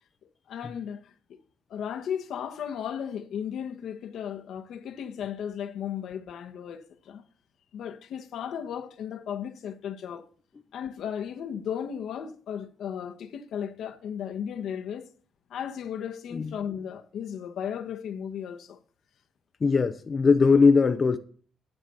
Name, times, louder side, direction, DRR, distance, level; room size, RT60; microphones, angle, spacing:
voice 1, 0.5-1.4 1.7-7.2 7.7-10.3 10.7-15.1 15.5-18.8, left 8 dB, 75° left, 1.4 m, -35 dB
voice 2, 19.6-21.2, left 4 dB, 35° left, 0.9 m, -20 dB
11.0 x 7.9 x 6.9 m
cardioid pair, 90°, 0 cm